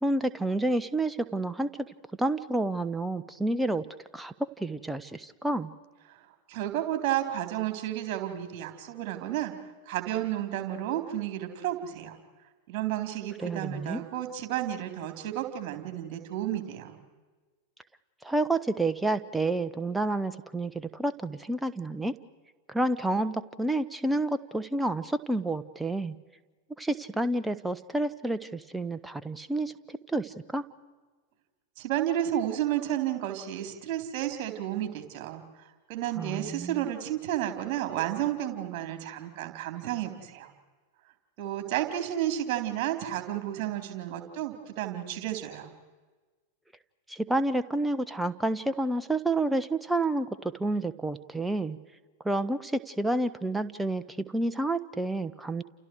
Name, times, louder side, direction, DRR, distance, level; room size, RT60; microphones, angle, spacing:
voice 1, 0.0-1.9 2.2-3.8 4.1-5.7 13.4-14.0 18.2-22.1 22.7-26.2 26.8-30.6 36.2-36.9 47.1-51.8 52.2-55.6, right 2 dB, 5° right, 12 dB, 1.2 m, -29 dB
voice 2, 6.5-9.5 9.9-12.2 12.7-17.0 31.8-35.4 35.9-40.5 41.4-45.7, right 12 dB, 40° right, 7 dB, 4.0 m, -32 dB
30.0 x 29.0 x 4.8 m, 1.3 s
figure-of-eight pair, 90°, 0 cm